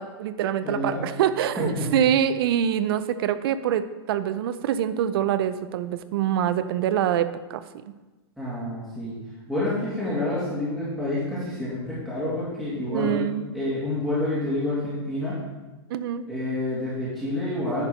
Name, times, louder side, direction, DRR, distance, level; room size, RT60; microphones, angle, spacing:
voice 1, 0.0-7.6 12.9-13.5 15.9-16.2, right 10 dB, 60° right, 13 dB, 0.6 m, -25 dB
voice 2, 0.6-1.1 1.6-1.9 8.4-9.2 9.5-13.3 13.5-15.4 16.3-17.8, left 1 dB, ahead, -11 dB, 2.3 m, -28 dB
10.5 x 4.5 x 5.0 m, 1.2 s
supercardioid pair, 150°, 14 cm